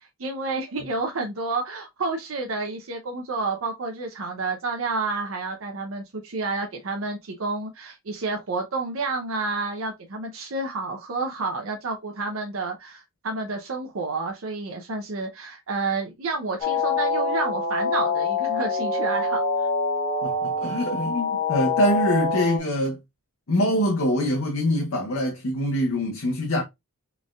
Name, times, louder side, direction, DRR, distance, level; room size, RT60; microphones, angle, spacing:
voice 1, 0.2-19.4, right 3 dB, 70° right, 0.7 m, -30 dB
sound 1, 16.6-22.6, left 3 dB, 25° left, 1.4 m, -25 dB
voice 2, 20.2-23.0 23.5-26.6, equal, 70° left, 0.8 m, -24 dB
4.1 x 3.4 x 2.3 m
head